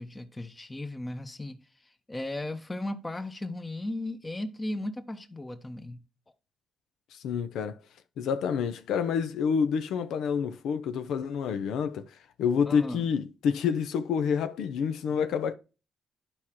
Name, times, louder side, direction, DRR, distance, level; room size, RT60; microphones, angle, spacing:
voice 1, 0.0-1.6 2.1-6.0 12.7-13.1 15.1-15.2, left 1 dB, 20° left, 0.9 m, -36 dB
voice 2, 7.1-7.8 8.2-12.1 12.4-15.5, left 6 dB, 80° left, 0.6 m, -28 dB
12.0 x 4.8 x 2.9 m
cardioid pair, 90°, 0 cm